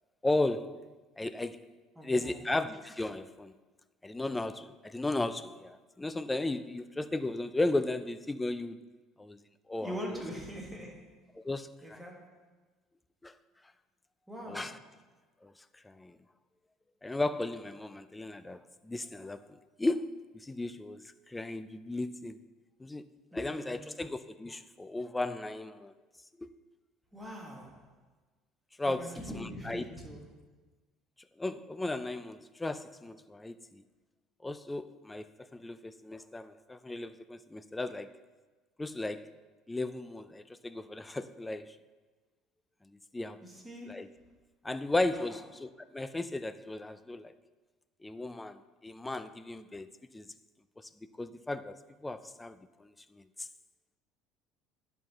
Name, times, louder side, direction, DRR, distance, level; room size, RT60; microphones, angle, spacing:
voice 1, 0.2-1.6 2.0-3.5 4.0-8.8 9.2-9.4 9.7-10.0 11.4-12.0 13.2-13.4 14.5-14.8 15.4-16.2 17.0-22.4 22.8-23.1 23.3-25.9 26.4-26.5 28.8-29.0 29.4-29.8 31.4-33.8 34.4-38.2 38.8-39.3 39.7-41.8 43.1-43.4 43.9-44.1 44.6-47.3 48.0-49.9 50.1-50.3 50.8-53.5, left 2 dB, 10° left, 13 dB, 0.3 m, -35 dB
voice 2, 1.9-2.4 9.8-11.1 11.8-12.4 14.3-14.8 23.3-24.0 27.1-27.9 28.8-30.2 43.4-44.2 45.1-45.4, equal, 5° right, -1 dB, 1.6 m, -43 dB
11.0 x 5.5 x 3.0 m, 1.3 s
supercardioid pair, 105°, 0 cm